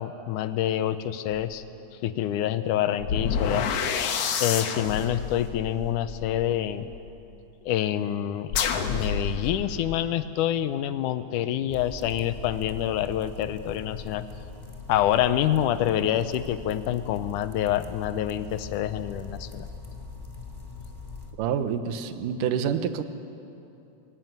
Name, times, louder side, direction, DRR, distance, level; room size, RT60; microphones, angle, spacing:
voice 1, 0.0-1.6 2.0-3.7 4.4-6.9 7.7-8.5 8.9-14.2 14.9-19.7, left 11 dB, 80° left, 12 dB, 2.2 m, -27 dB
sound 1, 1.3-1.5 3.0-7.1 8.5-9.9, left 6 dB, 60° left, 1.9 m, -29 dB
sound 2, 11.7-21.3, left 3 dB, 20° left, 0.7 m, -42 dB
voice 2, 21.4-23.0, right 8 dB, 85° right, 10 dB, 2.6 m, -27 dB
22.0 x 17.5 x 9.3 m, 2.8 s
omnidirectional pair, 3.7 m